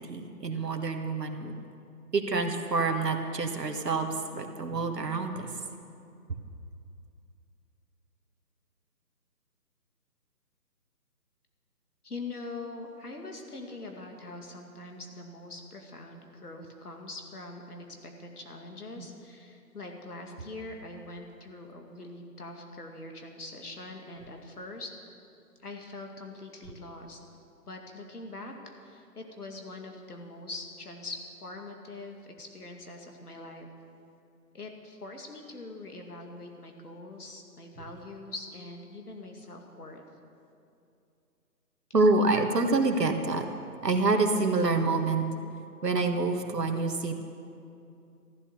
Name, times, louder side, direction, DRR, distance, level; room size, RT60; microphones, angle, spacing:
voice 1, 0.1-1.5 2.1-5.6 19.0-19.1 41.9-43.5 43.8-45.2 45.8-47.2, right 3 dB, 75° right, 5 dB, 1.8 m, -27 dB
voice 2, 12.0-24.9 25.6-27.2 27.7-28.5 28.8-33.7 34.5-40.0, left 2 dB, 65° left, 3 dB, 2.3 m, -43 dB
14.5 x 11.5 x 6.7 m, 2.6 s
figure-of-eight pair, 175°, 49 cm